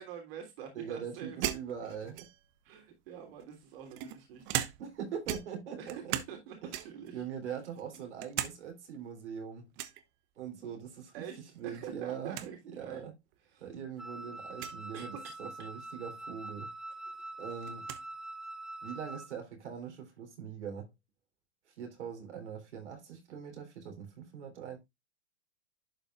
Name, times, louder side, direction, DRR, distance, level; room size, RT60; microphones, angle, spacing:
voice 1, 0.0-1.4 2.6-4.7 5.8-6.0 6.3-7.2 11.1-13.0 13.5-13.7 14.9-15.1, right 8 dB, 55° right, 3.3 m, -46 dB
voice 2, 0.7-2.3 4.8-6.2 6.6-6.7 7.1-9.7 10.4-11.3 11.5-13.1 13.6-16.7 17.4-17.9 18.8-20.9 21.7-24.8, right 7 dB, 80° right, 3.6 m, -42 dB
sound 1, 1.4-2.6 3.4-5.0 5.3-6.4 6.7-7.1 7.6-8.6 8.9-9.0 9.8-10.0 11.5-11.8 12.1-12.2 12.3-12.5 13.3-13.4 14.5-14.8 16.5-16.6 16.9-18.1, right 13 dB, 35° right, 0.9 m, -38 dB
Wind instrument woodwind instrument, 14.0-19.3, right 2 dB, ahead, 0.6 m, -44 dB
11.5 x 5.4 x 2.4 m
hypercardioid pair, 125°, 34 cm